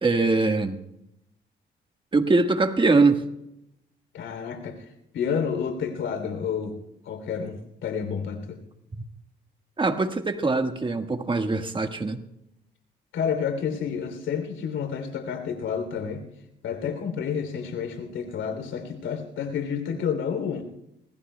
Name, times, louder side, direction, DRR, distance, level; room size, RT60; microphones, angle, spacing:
voice 1, 0.0-0.8 2.1-3.2 9.8-12.2, right 3 dB, 25° right, 6 dB, 1.5 m, -22 dB
voice 2, 4.1-4.8 5.1-6.7 7.0-8.6 13.1-16.2 16.6-20.6, left 7 dB, 80° left, 7 dB, 3.2 m, -29 dB
25.5 x 20.0 x 2.3 m, 0.81 s
cardioid pair, 90°, 20 cm